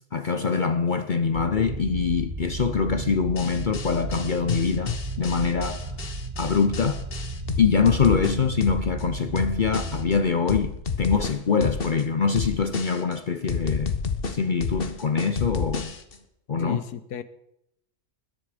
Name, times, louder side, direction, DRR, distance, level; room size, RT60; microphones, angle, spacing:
voice 1, 0.1-5.8 6.4-7.0 7.6-13.9 14.3-15.9 16.5-16.8, left 5 dB, 60° left, 0.5 m, -24 dB
sound 1, 1.3-10.2, right 2 dB, 20° right, 1.6 m, -34 dB
sound 2, 3.4-9.0 9.4-10.2 10.5-12.0 12.4-13.2 13.5-16.2, left 5 dB, 40° left, 1.3 m, -30 dB
voice 2, 16.6-17.2, left 8 dB, 75° left, 1.4 m, -34 dB
20.5 x 10.5 x 5.1 m
omnidirectional pair, 1.7 m